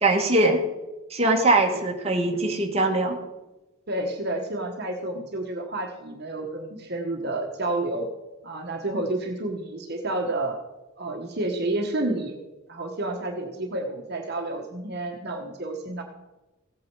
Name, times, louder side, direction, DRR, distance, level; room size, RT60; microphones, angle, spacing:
voice 1, 0.0-0.6 1.1-3.2, right 2 dB, 30° right, 2 dB, 1.5 m, -21 dB
voice 2, 3.9-8.1 8.4-10.6 11.0-12.4 12.7-16.0, right 2 dB, 50° right, 3 dB, 1.3 m, -30 dB
16.0 x 8.5 x 4.7 m, 1.1 s
head